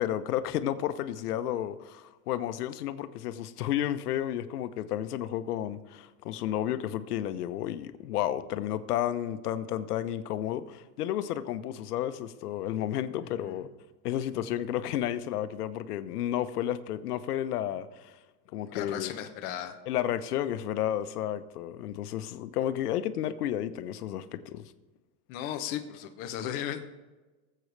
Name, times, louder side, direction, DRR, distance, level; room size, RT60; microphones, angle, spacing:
voice 1, 0.0-13.7 14.0-18.2 18.5-19.1 19.9-24.6, left 11 dB, 85° left, 0.9 m, -32 dB
voice 2, 13.2-13.6 18.7-19.8 25.3-26.8, left 10 dB, 20° left, 0.5 m, -36 dB
19.0 x 7.8 x 3.3 m
supercardioid pair, 165°, 45 cm